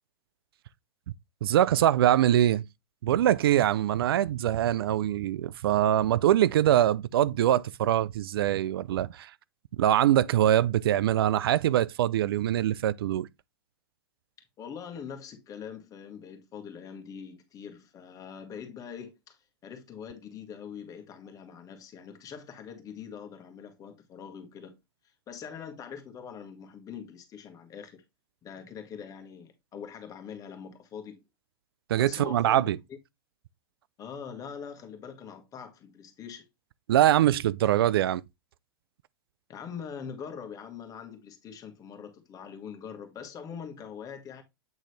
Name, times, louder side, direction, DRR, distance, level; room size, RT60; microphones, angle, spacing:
voice 1, 1.4-2.6 3.0-9.3 9.8-13.3 31.9-32.8 36.9-38.2, right 12 dB, 70° right, 0.4 m, -23 dB
voice 2, 14.6-24.8 25.3-28.0 28.4-31.2 31.9-33.0 34.0-36.5 39.5-44.4, left 7 dB, 30° left, 1.6 m, -43 dB
8.3 x 3.8 x 3.3 m
hypercardioid pair, 115°, 13 cm